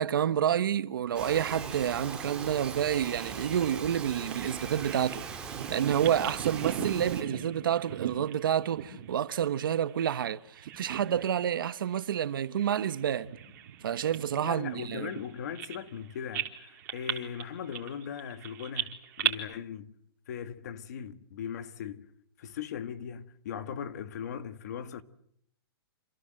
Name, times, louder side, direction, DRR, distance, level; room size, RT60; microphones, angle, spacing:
voice 1, 0.0-13.3 13.8-15.1, right 9 dB, 55° right, 1.3 m, -29 dB
Bird vocalization bird call bird song, 1.1-7.2, right 5 dB, 5° right, 2.5 m, -40 dB
Bird vocalization bird call bird song 2, 4.3-10.3 10.6-11.5 11.8-12.0 12.6-16.0 16.3-19.3, right 10 dB, 40° right, 4.0 m, -38 dB
voice 2, 14.4-19.9 20.3-22.1 22.4-25.0, left 8 dB, 40° left, 1.6 m, -39 dB
27.5 x 27.5 x 7.9 m
hypercardioid pair, 175°, 14 cm